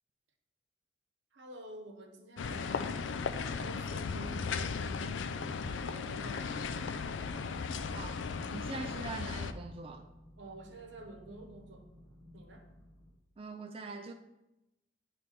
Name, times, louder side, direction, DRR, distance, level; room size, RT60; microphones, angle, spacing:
voice 1, 1.3-7.0 10.4-11.9 12.3-12.7, right 2 dB, 80° right, 0.9 m, -50 dB
sound 1, 2.4-9.5, left 5 dB, 85° left, 0.4 m, -36 dB
sound 2, 4.0-13.1, equal, 20° left, 1.0 m, -54 dB
voice 2, 7.9-8.2 8.5-10.1 13.4-14.1, right 4 dB, 30° right, 0.3 m, -43 dB
9.7 x 3.3 x 4.1 m
head